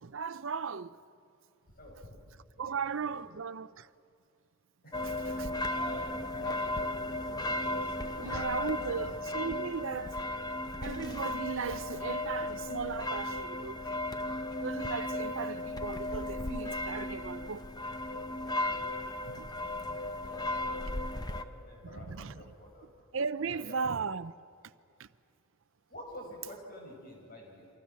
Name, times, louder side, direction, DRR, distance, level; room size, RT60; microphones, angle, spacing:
voice 1, 0.0-1.0 2.6-3.9 8.2-10.2 10.8-13.8 14.6-17.6 19.2-19.5 21.9-22.3 23.1-24.3 25.0-25.1, right 5 dB, 65° right, 0.6 m, -36 dB
voice 2, 2.5-3.1 4.8-9.0 20.2-22.9 23.4-23.8 25.9-27.7, left 1 dB, 45° left, 7.3 m, -49 dB
sound 1, 4.9-21.4, left 1 dB, 20° left, 0.8 m, -35 dB
28.0 x 25.5 x 7.6 m
head